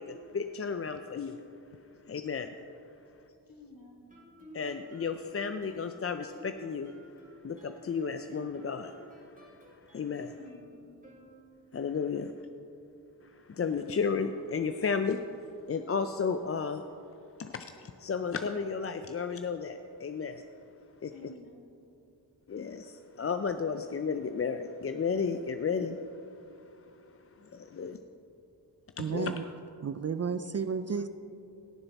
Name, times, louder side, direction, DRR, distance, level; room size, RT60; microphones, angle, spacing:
voice 1, 0.0-1.4 2.1-2.5 4.5-6.9 7.4-10.3 11.7-12.3 13.2-15.2 15.7-16.8 17.4-20.4 21.0-21.1 22.5-26.0 27.4-28.0 29.0-29.4, left 5 dB, 35° left, 8 dB, 0.4 m, -33 dB
voice 2, 3.5-4.1 10.3-11.0 21.1-21.8, left 2 dB, 50° left, 0 dB, 2.0 m, -53 dB
Guitar, 4.1-11.8, right 1 dB, 20° right, 2.4 m, -53 dB
voice 3, 29.0-29.4 29.8-31.1, right 6 dB, 40° right, 11 dB, 0.4 m, -32 dB
17.5 x 6.7 x 4.1 m, 2.8 s
cardioid pair, 55°, 44 cm